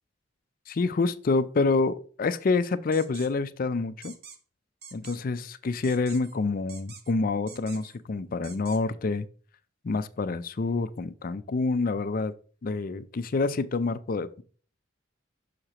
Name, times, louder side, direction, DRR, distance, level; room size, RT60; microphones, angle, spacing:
voice 1, 0.7-4.1 4.9-9.3 9.8-12.3 12.6-14.4, left 3 dB, 45° left, 0.4 m, -27 dB
sound 1, 2.9-3.3 4.0-4.4 4.8-5.2 5.8-6.4 6.7-7.1 7.5-8.0 8.4-8.8, right 6 dB, 50° right, 0.9 m, -46 dB
6.5 x 6.4 x 2.9 m
head